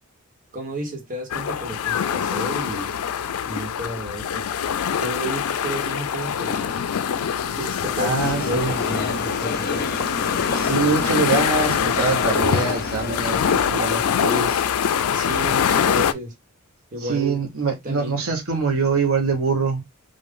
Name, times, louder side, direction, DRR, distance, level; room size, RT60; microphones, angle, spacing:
voice 1, 0.5-3.0 3.4-4.5 5.0-6.8 7.4-9.9 15.1-16.3 16.9-17.4 17.8-18.3, right 1 dB, 40° right, 1.3 m, -32 dB
sound 1, 1.3-16.1, left 8 dB, 90° left, 0.4 m, -24 dB
voice 2, 8.0-8.7 10.5-14.6 17.0-19.8, right 4 dB, 75° right, 1.1 m, -24 dB
sound 2, 8.2-13.7, left 4 dB, 45° left, 0.6 m, -29 dB
3.7 x 2.5 x 3.7 m
head